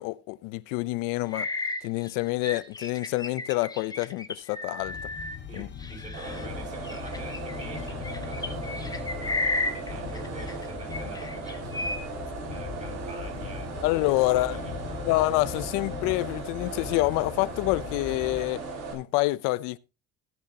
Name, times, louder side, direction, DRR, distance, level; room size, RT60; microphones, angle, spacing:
voice 1, 0.0-1.5 1.8-5.1 5.5-5.7 13.8-14.6 15.0-18.6 18.9-19.8, left 20 dB, 90° left, 0.7 m, -27 dB
sound 1, 1.3-6.5 6.8-10.6 10.9-12.0, left 2 dB, 10° left, 1.5 m, -33 dB
sound 2, 4.8-18.5, left 7 dB, 35° left, 1.9 m, -40 dB
voice 2, 5.5-12.0 12.5-15.1, right 3 dB, 25° right, 6.7 m, -46 dB
sound 3, 6.1-18.9, right 3 dB, 55° right, 6.3 m, -37 dB
16.5 x 10.5 x 2.9 m
cardioid pair, 135°, 31 cm